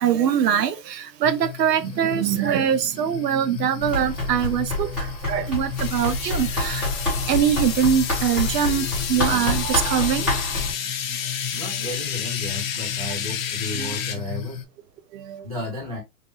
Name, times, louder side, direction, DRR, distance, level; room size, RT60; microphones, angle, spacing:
voice 1, 0.0-4.9 5.3-6.9 7.3-10.2 13.8-13.9, right 9 dB, 70° right, 0.7 m, -22 dB
sound 1, 1.2-14.7, left 9 dB, 90° left, 0.8 m, -36 dB
Run, 3.8-10.7, left 1 dB, ahead, 0.8 m, -27 dB
sound 2, 5.8-14.1, left 8 dB, 55° left, 0.6 m, -30 dB
voice 2, 11.5-14.6 15.4-16.0, left 1 dB, 25° right, 0.4 m, -33 dB
3.1 x 2.1 x 2.9 m
hypercardioid pair, 170°, 50 cm